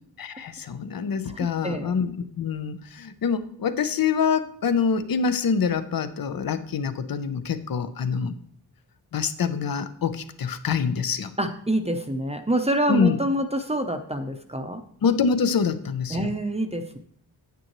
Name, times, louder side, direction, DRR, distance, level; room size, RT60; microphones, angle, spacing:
voice 1, 0.2-8.4 9.1-11.3 12.9-13.2 15.0-16.3, left 6 dB, 60° left, 11 dB, 0.7 m, -25 dB
voice 2, 1.3-1.9 11.4-14.8 16.1-17.0, right 1 dB, 15° right, 6 dB, 0.6 m, -26 dB
9.1 x 9.0 x 3.1 m, 0.62 s
wide cardioid pair, 130°, 40 cm